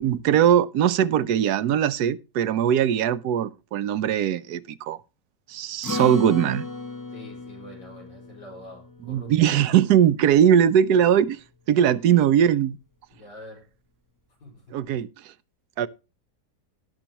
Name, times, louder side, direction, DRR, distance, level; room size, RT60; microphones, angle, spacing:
voice 1, 0.0-5.0 5.5-6.7 9.1-11.4 11.7-12.8 14.7-15.3 15.8-15.9, right 9 dB, 75° right, 1.1 m, -20 dB
Acoustic guitar, 5.8-10.5, left 2 dB, 15° left, 1.1 m, -35 dB
voice 2, 7.1-9.5 11.7-12.1 13.1-13.7 14.4-14.7, left 1 dB, 85° left, 5.6 m, -46 dB
18.0 x 6.1 x 2.9 m
omnidirectional pair, 1.8 m